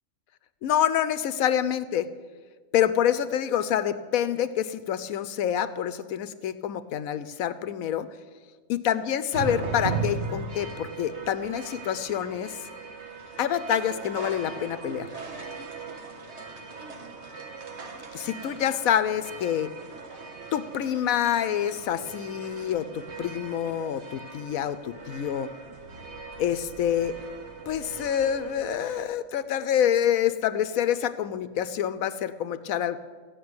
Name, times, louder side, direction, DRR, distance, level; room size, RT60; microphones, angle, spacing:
voice 1, 0.6-2.1 2.7-8.1 8.7-12.6 13.4-15.1 18.1-19.7 20.5-25.5 26.4-27.2 27.7-33.0, left 10 dB, 80° left, 14 dB, 1.0 m, -27 dB
sound 1, 9.3-29.0, right 4 dB, 55° right, 1.5 m, -38 dB
15.0 x 6.2 x 9.5 m, 1.5 s
omnidirectional pair, 1.5 m